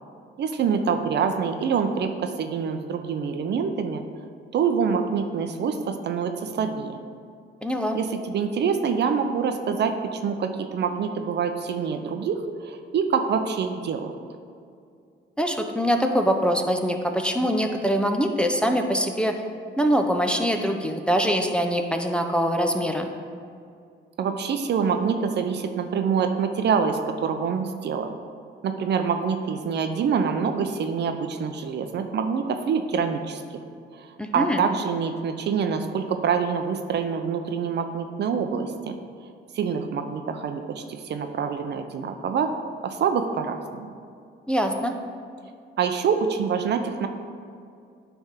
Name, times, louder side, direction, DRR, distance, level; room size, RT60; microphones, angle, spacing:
voice 1, 0.4-4.0 4.5-7.0 7.9-14.1 24.2-28.2 28.6-33.4 34.3-38.9 39.5-42.5 42.8-43.9 45.8-47.1, right 6 dB, 60° right, 7 dB, 0.6 m, -26 dB
voice 2, 7.6-8.0 15.4-19.3 19.8-23.1 34.2-34.6 44.5-44.9, equal, 5° left, 4 dB, 0.6 m, -23 dB
9.4 x 3.5 x 5.7 m, 2.4 s
cardioid pair, 90°, 20 cm